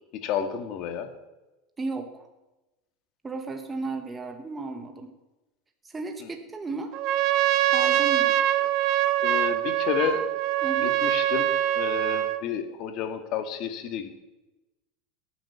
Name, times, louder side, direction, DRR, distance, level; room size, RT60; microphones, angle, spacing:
voice 1, 0.2-1.1 9.2-10.3 10.8-14.2, left 7 dB, 50° left, 7 dB, 2.0 m, -31 dB
voice 2, 1.8-2.3 3.2-5.1 5.8-6.9 7.7-8.4 10.6-11.0, right 3 dB, 15° right, 4 dB, 1.5 m, -34 dB
Trumpet, 6.9-12.4, right 12 dB, 45° right, 0.9 m, -24 dB
18.0 x 9.4 x 7.0 m, 1.1 s
supercardioid pair, 145°, 0 cm